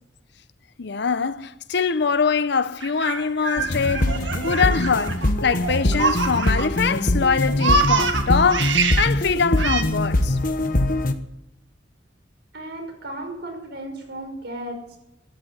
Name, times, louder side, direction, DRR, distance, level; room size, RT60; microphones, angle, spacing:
voice 1, 0.8-10.4, left 5 dB, 65° left, 0.7 m, -23 dB
Laughter, 2.8-6.9 7.2-9.1 9.6-9.8, right 4 dB, 80° right, 1.8 m, -25 dB
sound 1, 3.6-11.1, left 1 dB, 50° left, 1.2 m, -23 dB
voice 2, 12.5-15.0, right 1 dB, 65° right, 5.6 m, -35 dB
13.5 x 10.5 x 9.6 m
head